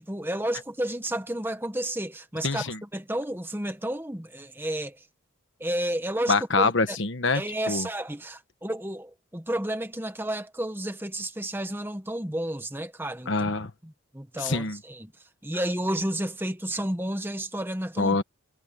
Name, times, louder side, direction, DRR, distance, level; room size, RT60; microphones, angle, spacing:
voice 1, 0.0-5.0 5.6-7.0 7.3-13.3 13.8-15.1 15.4-18.2, right 1 dB, 10° right, 1.3 m, -31 dB
voice 2, 2.4-2.8 6.3-7.4 7.7-7.9 13.3-13.7 14.4-14.8 18.0-18.2, left 3 dB, 60° left, 1.4 m, -25 dB
head